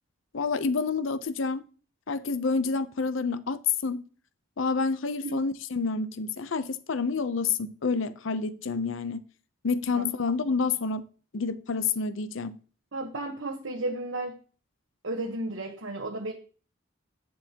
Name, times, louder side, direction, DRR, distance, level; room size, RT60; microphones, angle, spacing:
voice 1, 0.3-1.6 2.1-4.0 4.6-9.2 9.6-11.0 11.3-12.6, left 4 dB, 70° left, 0.6 m, -28 dB
voice 2, 12.9-14.4 15.0-16.3, right 2 dB, 75° right, 1.1 m, -33 dB
10.5 x 7.6 x 2.9 m
head